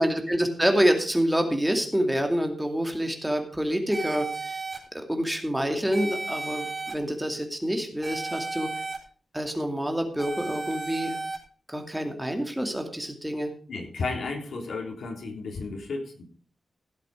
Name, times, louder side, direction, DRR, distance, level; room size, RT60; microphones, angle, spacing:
voice 1, 0.0-4.6 4.9-8.7 9.3-11.2 11.7-13.5, equal, 5° right, 4 dB, 2.4 m, -27 dB
sound 1, 3.9-4.8 5.9-6.9 8.0-9.0 10.2-11.4, right 3 dB, 25° right, 4.0 m, -33 dB
voice 2, 13.7-16.2, left 3 dB, 80° left, 3 dB, 3.3 m, -33 dB
16.5 x 8.1 x 4.9 m, 0.42 s
wide cardioid pair, 140°, 0 cm